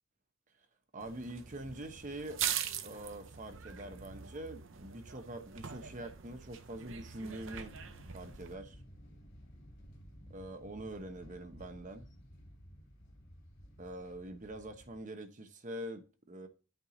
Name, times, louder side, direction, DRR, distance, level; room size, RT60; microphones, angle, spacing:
voice 1, 0.9-2.4 2.8-7.8 8.1-8.8 10.3-12.1 13.8-16.5, right 1 dB, 35° right, 1.0 m, -44 dB
sound 1, 1.0-8.6, right 9 dB, 65° right, 0.8 m, -42 dB
sound 2, 7.2-15.0, equal, 50° left, 2.9 m, -54 dB
9.0 x 4.5 x 4.0 m
head